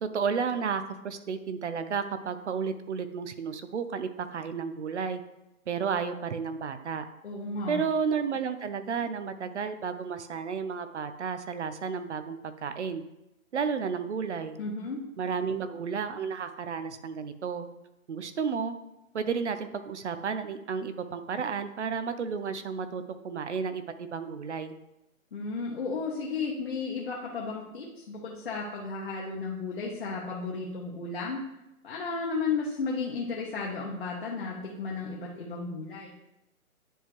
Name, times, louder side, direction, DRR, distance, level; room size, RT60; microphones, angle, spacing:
voice 1, 0.0-5.2 5.7-7.0 7.7-13.0 13.5-14.6 15.2-17.7 18.1-18.8 19.1-24.7, right 6 dB, 55° right, 10 dB, 0.6 m, -32 dB
voice 2, 7.2-7.8 14.6-15.0 25.3-31.4 31.8-36.2, left 4 dB, 45° left, -4 dB, 1.0 m, -34 dB
10.0 x 3.6 x 3.0 m, 0.91 s
hypercardioid pair, 165°, 43 cm